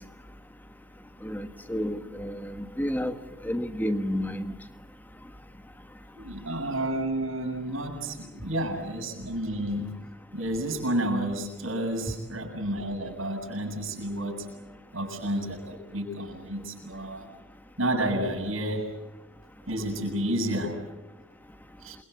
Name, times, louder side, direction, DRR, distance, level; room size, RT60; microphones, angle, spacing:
voice 1, 1.2-3.1 3.4-4.5, equal, 10° left, 8 dB, 1.4 m, -30 dB
voice 2, 6.1-9.9 10.3-14.4 14.9-17.3 17.8-18.9 19.7-20.8 21.8-22.0, right 1 dB, 75° right, 3 dB, 7.7 m, -30 dB
28.5 x 22.5 x 8.2 m, 1.0 s
head